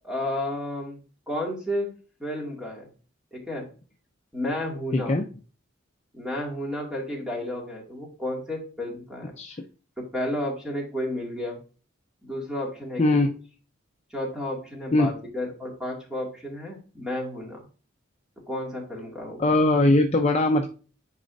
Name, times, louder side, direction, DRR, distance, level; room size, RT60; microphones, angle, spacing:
voice 1, 0.0-1.9 2.2-2.9 3.3-3.7 4.3-5.1 6.1-9.3 10.0-11.6 12.2-13.0 14.1-17.6 18.5-19.5, left 1 dB, 5° right, -2 dB, 2.2 m, -32 dB
voice 2, 4.9-5.2 9.4-9.6 13.0-13.3 14.9-15.1 19.4-20.7, left 2 dB, 30° left, 3 dB, 0.6 m, -20 dB
9.8 x 4.1 x 2.6 m, 0.36 s
head